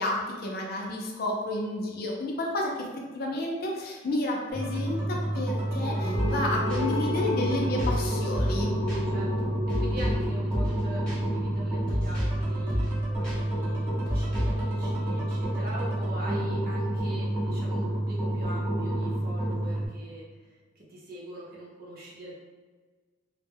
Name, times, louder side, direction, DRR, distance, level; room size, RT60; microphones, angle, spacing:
voice 1, 0.0-8.7, left 1 dB, 50° left, -1 dB, 0.5 m, -31 dB
sound 1, 4.5-19.9, right 1 dB, 10° right, 0.7 m, -29 dB
sound 2, 6.0-13.5, left 2 dB, 90° right, 0.6 m, -36 dB
sound 3, 6.1-6.4 6.7-6.8 7.8-8.1 8.3-8.6 8.9-9.0 9.7-10.2 10.5-10.8 11.1-11.2 11.9-12.4 12.7-13.0 13.2-13.4 14.1-14.6, equal, 5° left, 0.9 m, -30 dB
voice 2, 9.1-22.4, right 1 dB, 50° right, -4 dB, 0.7 m, -43 dB
2.1 x 2.1 x 3.3 m, 1.4 s
head